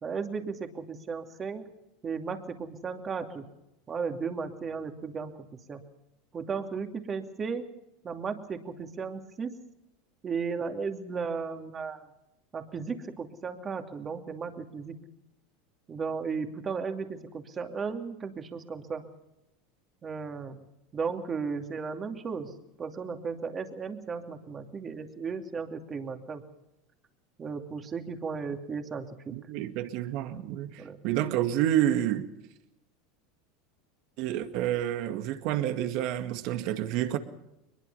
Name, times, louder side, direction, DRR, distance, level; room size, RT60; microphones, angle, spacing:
voice 1, 0.0-1.7 2.0-3.5 3.9-5.8 6.3-7.7 8.0-9.6 10.2-12.0 12.5-15.0 15.9-19.1 20.0-20.6 20.9-22.5 22.8-26.4 27.4-29.3 30.8-31.0, right 5 dB, 30° right, 2.7 m, -35 dB
voice 2, 29.3-32.3 34.2-37.2, right 12 dB, 60° right, 1.9 m, -29 dB
22.5 x 21.0 x 5.6 m
hypercardioid pair, 105°, 0 cm